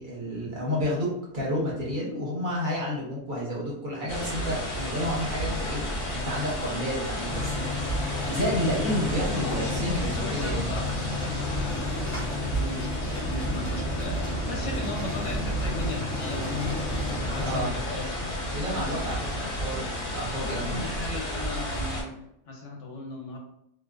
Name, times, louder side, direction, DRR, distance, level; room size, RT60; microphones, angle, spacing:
voice 1, 0.0-5.8 6.1-7.5 8.2-10.7 17.4-17.7 18.5-20.9, equal, 45° right, -5 dB, 0.9 m, -30 dB
sound 1, 4.1-22.0, equal, 50° left, 1.0 m, -32 dB
sound 2, 7.3-17.6, left 3 dB, 30° left, 0.3 m, -33 dB
voice 2, 9.4-18.4 18.7-19.3 20.5-23.4, left 1 dB, 75° left, 0 dB, 1.0 m, -37 dB
2.4 x 2.3 x 2.2 m, 0.77 s
omnidirectional pair, 1.3 m